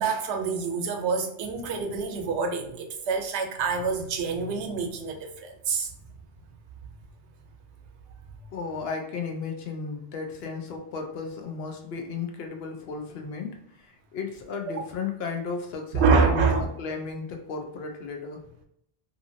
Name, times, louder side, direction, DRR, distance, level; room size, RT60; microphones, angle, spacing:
voice 1, 0.0-5.9 14.7-14.8 15.9-16.7, right 5 dB, 85° right, 5 dB, 0.9 m, -26 dB
voice 2, 8.5-18.4, left 5 dB, 70° left, 3 dB, 0.8 m, -34 dB
2.8 x 2.5 x 2.5 m, 0.73 s
omnidirectional pair, 1.1 m